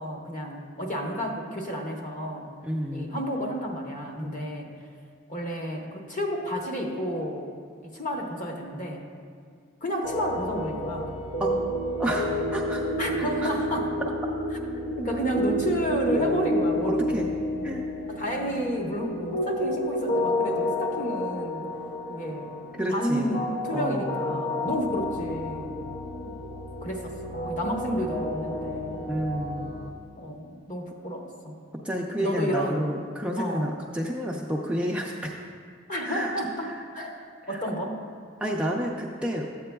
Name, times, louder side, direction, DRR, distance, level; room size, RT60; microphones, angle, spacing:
voice 1, 0.0-2.5 2.9-4.7 5.3-7.5 7.9-9.1 9.8-11.1 13.0-13.9 15.0-17.3 18.1-21.7 22.1-22.5 22.9-25.8 26.8-29.1 30.2-31.5 32.2-32.9 33.4-33.8 35.9-37.1 37.5-38.0, equal, 40° left, 0 dB, 1.0 m, -31 dB
voice 2, 2.6-3.2 4.1-4.5 11.4-11.5 12.0-12.8 13.4-13.5 16.8-17.3 17.6-17.9 22.8-23.4 23.7-24.4 26.3-26.4 29.1-29.7 31.8-35.4 36.0-36.3 36.6-36.8 37.5-37.6 38.4-39.5, equal, 5° right, -2 dB, 0.4 m, -30 dB
sound 1, 10.0-29.9, left 1 dB, 75° left, 0.7 m, -30 dB
13.0 x 8.4 x 2.3 m, 2.1 s
head